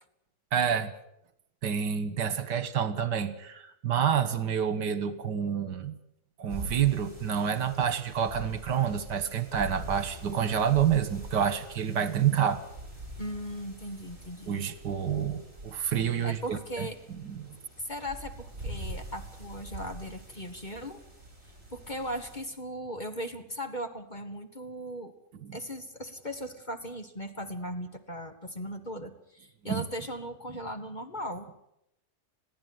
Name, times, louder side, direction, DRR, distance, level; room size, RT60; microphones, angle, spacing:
voice 1, 0.5-0.9 1.6-5.9 6.4-12.6 14.5-16.9 17.2-17.6 25.4-25.6 29.6-29.8, right 8 dB, 75° right, 13 dB, 2.0 m, -28 dB
sound 1, 6.5-22.4, right 1 dB, 35° right, 6.5 m, -44 dB
voice 2, 13.2-14.6 16.2-17.0 17.8-21.0 21.7-25.1 25.5-31.5, equal, 30° left, 7 dB, 1.5 m, -38 dB
21.5 x 15.0 x 9.4 m, 0.80 s
omnidirectional pair, 1.9 m